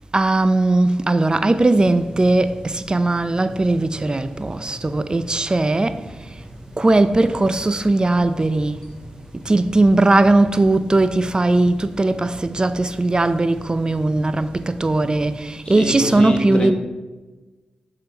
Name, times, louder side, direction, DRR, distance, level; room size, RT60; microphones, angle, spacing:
voice 1, 0.1-6.0 6.8-8.9 9.4-16.7, right 2 dB, 30° right, 0.4 m, -18 dB
sound 1, 1.7-15.4, equal, 15° left, 1.6 m, -41 dB
voice 2, 15.6-16.7, left 2 dB, 35° left, 1.2 m, -24 dB
6.7 x 3.8 x 4.4 m
cardioid pair, 50°, 3 cm